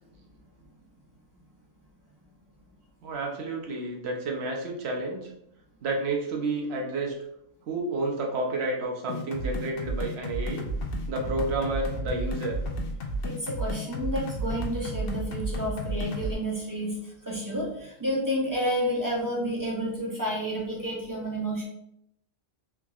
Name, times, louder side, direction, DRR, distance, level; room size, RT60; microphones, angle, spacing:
voice 1, 3.0-5.3 5.8-7.2 7.7-10.7 11.1-12.6, right 2 dB, 60° right, 0 dB, 0.9 m, -30 dB
sound 1, 9.1-16.3, right 1 dB, 60° left, 0.7 m, -32 dB
voice 2, 13.2-21.6, equal, 20° right, -5 dB, 0.5 m, -30 dB
3.5 x 2.9 x 2.3 m, 0.77 s
omnidirectional pair, 1.4 m